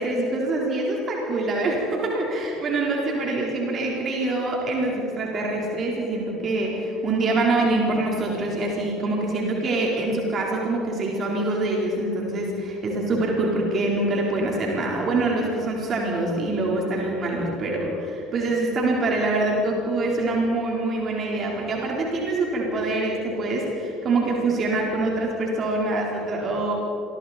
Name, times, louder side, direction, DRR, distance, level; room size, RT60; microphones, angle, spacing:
voice 1, 0.0-26.7, right 2 dB, 40° right, -1 dB, 4.1 m, -25 dB
27.0 x 22.0 x 4.4 m, 3.0 s
figure-of-eight pair, 60°, 0 cm